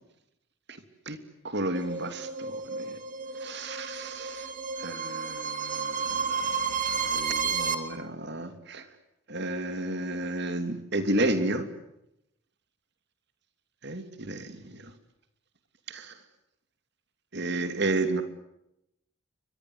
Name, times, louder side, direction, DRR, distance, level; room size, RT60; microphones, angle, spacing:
voice 1, 1.4-3.0 3.4-4.5 4.8-8.8 9.3-11.7 13.8-14.9 15.9-16.1 17.3-18.2, right 2 dB, 55° right, 9 dB, 2.9 m, -32 dB
sound 1, 1.7-7.7, right 5 dB, 40° right, 2.6 m, -32 dB
30.0 x 24.5 x 8.0 m, 0.83 s
head